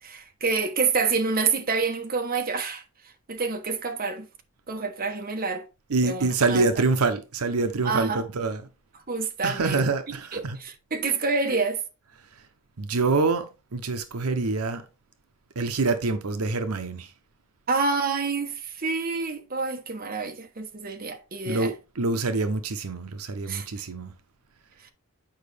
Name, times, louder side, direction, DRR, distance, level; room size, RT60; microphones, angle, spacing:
voice 1, 0.0-2.8 3.3-4.3 4.7-5.7 6.0-6.7 7.8-8.2 9.1-9.8 10.3-11.8 17.7-21.7 23.5-23.7, right 4 dB, 40° right, 1.1 m, -27 dB
voice 2, 5.9-8.7 9.4-10.6 12.8-14.8 15.6-17.1 21.4-24.1, right 3 dB, 80° right, 0.8 m, -26 dB
8.8 x 5.1 x 3.3 m
head